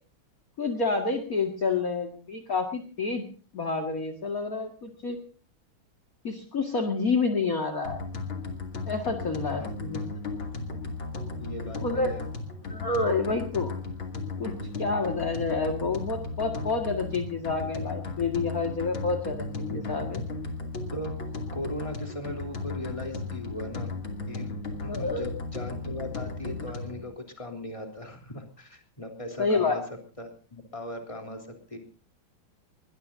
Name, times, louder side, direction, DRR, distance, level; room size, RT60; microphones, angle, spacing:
voice 1, 0.6-3.2 3.5-5.2 6.2-8.0 8.9-10.0 11.8-12.1 12.7-13.7 14.4-14.5 14.8-20.2 24.9-25.2 29.4-29.8, left 4 dB, 45° left, 4 dB, 2.3 m, -28 dB
sound 1, 7.8-27.0, left 3 dB, 70° left, 3.5 m, -35 dB
voice 2, 9.5-10.1 11.4-12.2 19.6-20.1 20.9-23.9 24.3-24.6 24.8-29.8 30.2-31.8, left 1 dB, 15° left, 4 dB, 3.4 m, -39 dB
21.5 x 20.5 x 2.7 m, 0.38 s
omnidirectional pair, 2.3 m